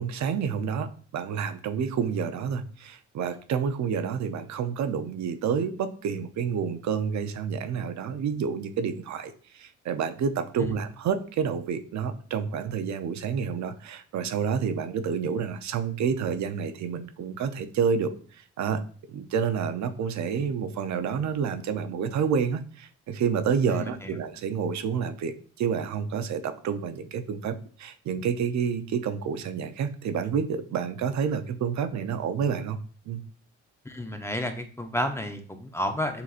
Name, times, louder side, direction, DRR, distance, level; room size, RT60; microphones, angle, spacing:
voice 1, 0.0-18.8 19.1-32.8 33.1-33.2, right 6 dB, 65° right, 9 dB, 0.6 m, -29 dB
voice 2, 23.7-24.1 33.8-36.2, left 1 dB, 10° left, 6 dB, 0.6 m, -31 dB
6.8 x 2.9 x 2.5 m, 0.43 s
cardioid pair, 90°, 30 cm